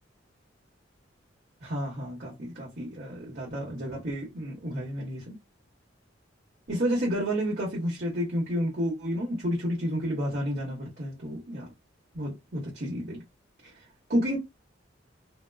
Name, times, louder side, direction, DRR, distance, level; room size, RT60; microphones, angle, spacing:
voice 1, 1.6-5.4 6.7-11.7 12.1-13.2 14.1-14.4, equal, 55° right, 1.2 m, -30 dB
2.9 x 2.0 x 2.2 m
head